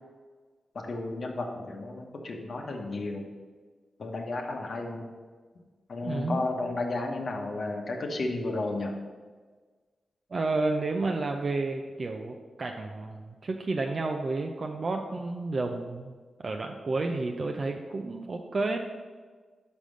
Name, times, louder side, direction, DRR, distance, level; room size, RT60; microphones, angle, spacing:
voice 1, 0.7-3.3 4.0-5.1 5.9-9.0, left 2 dB, 60° left, 2 dB, 1.0 m, -33 dB
voice 2, 6.0-6.5 10.3-16.1 16.4-18.8, right 3 dB, 45° right, 3 dB, 0.5 m, -31 dB
5.3 x 5.1 x 6.3 m, 1.5 s
cardioid pair, 85°, 0 cm